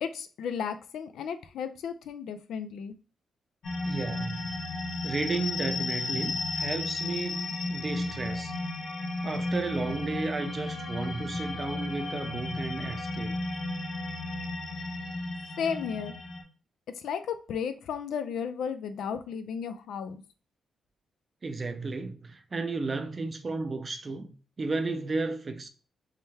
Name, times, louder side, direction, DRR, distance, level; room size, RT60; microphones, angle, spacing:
voice 1, 0.0-2.9 15.6-16.1 16.9-20.2, left 7 dB, 85° left, 0.4 m, -34 dB
sound 1, 3.6-16.4, left 2 dB, 50° left, 1.2 m, -33 dB
voice 2, 3.8-4.5 5.0-8.5 9.2-13.4 21.4-25.7, right 3 dB, 25° right, 0.5 m, -33 dB
3.7 x 3.2 x 2.8 m
wide cardioid pair, 170°, 0 cm